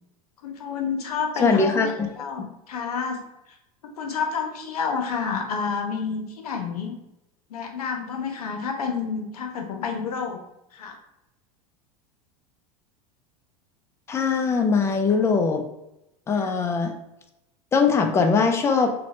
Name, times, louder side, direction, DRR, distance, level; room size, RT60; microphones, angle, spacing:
voice 1, 0.4-1.8 2.2-3.2 4.0-7.0 7.5-10.4 10.7-11.0 16.4-16.6, left 6 dB, 90° left, 4 dB, 0.6 m, -29 dB
voice 2, 1.4-2.1 14.1-15.6 16.3-16.9 17.7-18.9, left 4 dB, 15° left, 4 dB, 0.3 m, -21 dB
2.9 x 2.1 x 2.6 m, 0.87 s
hypercardioid pair, 105°, 19 cm